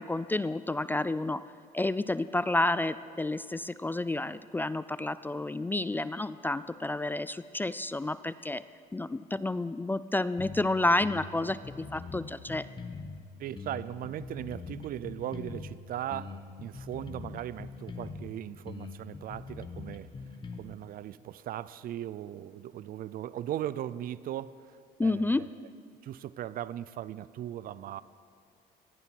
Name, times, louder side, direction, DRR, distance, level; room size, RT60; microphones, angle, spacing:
voice 1, 0.0-1.4 1.7-8.6 8.9-12.7 25.0-25.5, left 2 dB, 10° left, 15 dB, 0.3 m, -30 dB
sound 1, 10.4-10.7 11.0-13.2 13.6-15.8 16.1-18.3 18.7-20.6, left 4 dB, 25° left, 1.4 m, -42 dB
voice 2, 13.4-20.1 20.6-25.5 26.0-28.0, right 12 dB, 60° right, 18 dB, 0.5 m, -38 dB
20.0 x 14.5 x 4.6 m, 2.4 s
cardioid pair, 110°, 17 cm